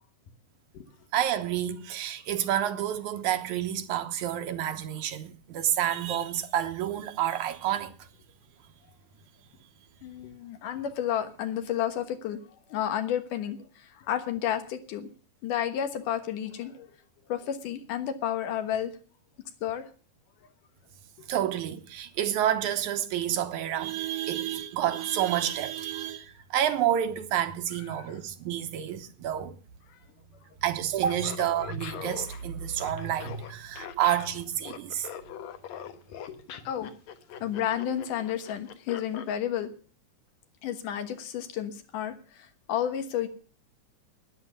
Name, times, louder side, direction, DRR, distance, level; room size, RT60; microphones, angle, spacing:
voice 1, 1.1-7.9 21.3-29.6 30.6-35.1, right 11 dB, 75° right, 2.5 m, -29 dB
voice 2, 10.0-12.4 12.7-15.1 15.4-16.9 17.3-18.9 19.6-19.8 27.9-28.1 36.3-36.4 36.6-36.9 37.4-39.7 40.6-43.3, left 10 dB, 90° left, 2.9 m, -31 dB
Laughter, 30.9-39.3, left 9 dB, 65° left, 2.2 m, -42 dB
13.0 x 10.0 x 7.0 m
omnidirectional pair, 3.6 m